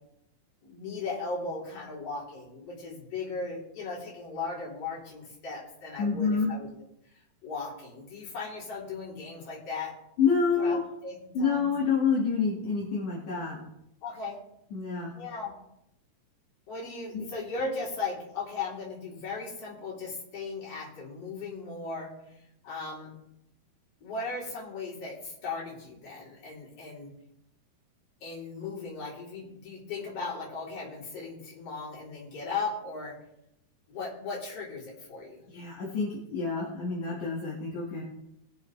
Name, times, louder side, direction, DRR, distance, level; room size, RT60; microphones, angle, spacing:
voice 1, 0.6-6.7 7.1-9.9 10.5-11.7 14.0-14.4 15.1-15.5 16.7-23.1 24.0-27.1 28.2-33.2 33.9-35.5, left 4 dB, 45° left, -6 dB, 4.4 m, -37 dB
voice 2, 6.0-6.5 10.2-10.8 11.3-13.6 14.7-15.1 17.1-17.2 35.5-38.0, left 5 dB, 65° left, -5 dB, 3.3 m, -27 dB
20.5 x 7.3 x 3.3 m, 0.81 s
omnidirectional pair, 3.9 m